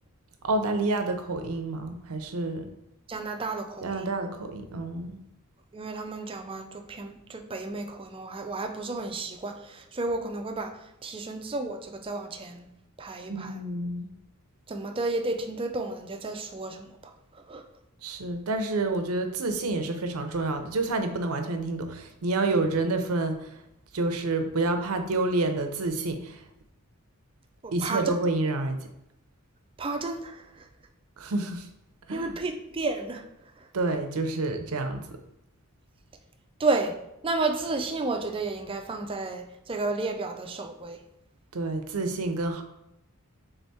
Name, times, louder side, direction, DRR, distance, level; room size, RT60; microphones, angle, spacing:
voice 1, 0.4-2.7 3.8-5.2 13.3-14.1 18.0-23.6 23.9-26.4 27.7-28.8 31.2-31.7 32.1-32.3 33.7-35.2 41.5-42.6, right 2 dB, 85° right, 6 dB, 0.6 m, -28 dB
voice 2, 3.1-4.1 5.7-12.7 13.0-13.6 14.7-17.6 27.6-28.1 29.8-30.7 32.1-33.2 33.6-33.7 36.6-36.9 37.2-41.0, right 3 dB, 25° right, 4 dB, 0.4 m, -32 dB
3.5 x 3.4 x 4.1 m, 0.84 s
head